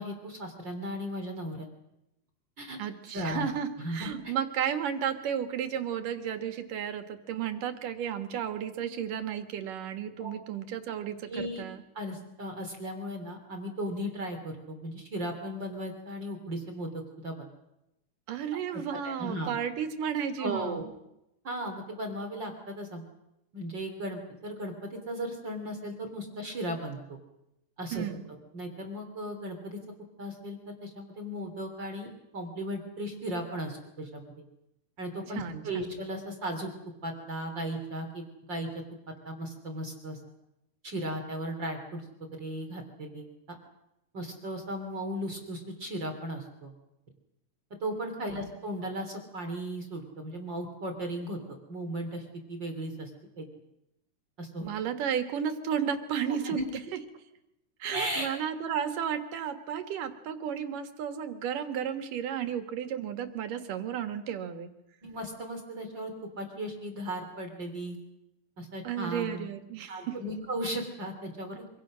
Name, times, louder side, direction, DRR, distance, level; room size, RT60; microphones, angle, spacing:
voice 1, 0.0-1.7 2.6-2.8 3.1-3.5 3.8-4.3 10.2-10.3 11.3-11.7 12.0-17.5 19.0-19.5 20.4-20.8 21.4-23.1 23.5-27.0 27.8-28.0 28.5-29.8 30.2-34.3 35.0-36.7 37.0-38.7 39.3-40.2 40.8-42.1 42.4-43.3 44.1-46.7 47.8-51.4 51.7-53.1 53.4-53.5 54.4-54.7 56.4-56.6 57.9-58.3 65.0-68.0 68.6-69.5 69.9-71.6, right 1 dB, 35° right, 4 dB, 3.6 m, -36 dB
voice 2, 2.8-11.8 18.3-20.9 27.9-28.2 35.3-36.0 48.3-48.5 54.6-56.6 56.9-57.0 57.8-64.7 68.8-70.2, right 8 dB, 90° right, 8 dB, 3.4 m, -33 dB
26.0 x 26.0 x 6.4 m, 0.87 s
omnidirectional pair, 3.7 m